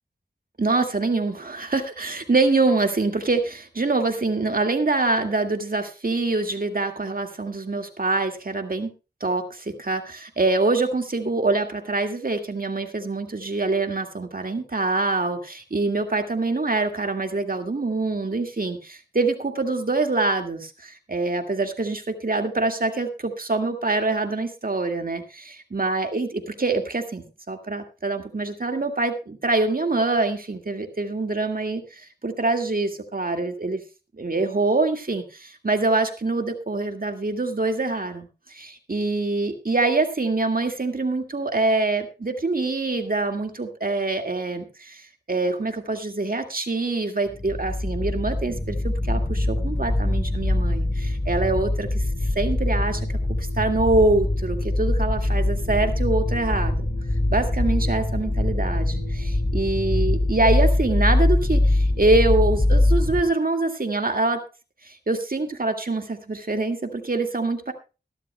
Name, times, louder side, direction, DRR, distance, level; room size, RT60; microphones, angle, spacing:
voice 1, 0.6-8.9 9.2-25.4 25.7-33.8 34.2-51.9 52.4-53.0 53.4-56.9 57.3-64.4 64.8-67.7, right 3 dB, 50° right, 5 dB, 2.0 m, -25 dB
sound 1, 47.3-63.2, left 1 dB, 40° left, 2.2 m, -23 dB
22.0 x 11.5 x 2.2 m, 0.31 s
wide cardioid pair, 55°, 19 cm